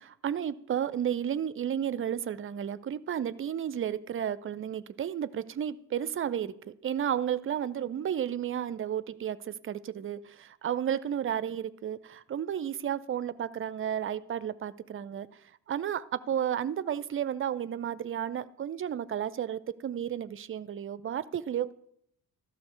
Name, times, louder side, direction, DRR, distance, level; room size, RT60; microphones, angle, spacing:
voice 1, 0.0-15.3 15.7-21.7, right 9 dB, 25° right, 17 dB, 0.5 m, -32 dB
13.0 x 6.3 x 4.7 m, 0.72 s
figure-of-eight pair, 40°, 49 cm